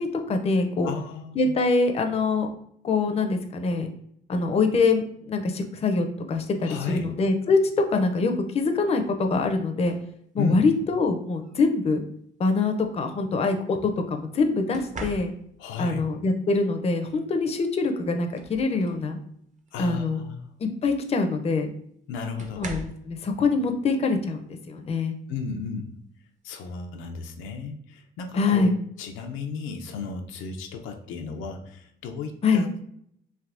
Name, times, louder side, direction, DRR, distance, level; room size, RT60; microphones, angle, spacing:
voice 1, 0.0-0.9 1.4-2.5 2.8-3.9 4.3-7.6 7.9-9.9 10.3-12.0 12.4-15.3 15.8-19.2 19.8-20.2 20.6-21.7 22.6-25.2 28.4-28.7 32.4-32.7, left 3 dB, 30° left, 5 dB, 0.4 m, -24 dB
voice 2, 0.8-1.5 6.6-7.1 10.4-10.7 15.6-16.0 19.7-20.4 22.1-22.7 25.3-25.9 26.4-32.8, left 5 dB, 90° left, 4 dB, 0.4 m, -34 dB
sound 1, 9.8-10.1 11.4-11.7 14.7-15.7 17.5-17.6 18.0-19.1 19.6-19.9 21.2-21.3 22.4-23.1 24.8-25.0 25.5-25.8, right 1 dB, 40° right, 0.5 m, -40 dB
3.3 x 2.6 x 2.5 m, 0.69 s
cardioid pair, 90°, 20 cm